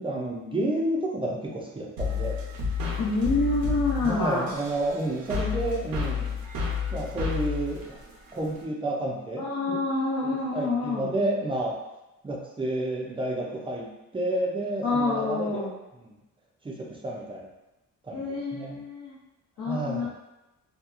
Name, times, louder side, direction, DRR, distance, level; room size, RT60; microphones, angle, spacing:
voice 1, 0.0-2.4 4.0-6.3 6.9-8.0 8.3-9.4 9.7-9.8 10.2-11.8 12.2-15.7 16.0-16.1 16.6-17.5 18.1-18.8 19.7-20.1, right 1 dB, 15° right, -2 dB, 0.3 m, -30 dB
sound 1, 2.0-8.6, left 5 dB, 90° right, 0.7 m, -31 dB
voice 2, 3.0-4.5 9.4-11.1 14.8-15.7 18.1-19.1 19.6-20.1, left 3 dB, 65° left, -8 dB, 0.7 m, -27 dB
2.8 x 2.3 x 2.4 m, 0.99 s
wide cardioid pair, 160°, 35 cm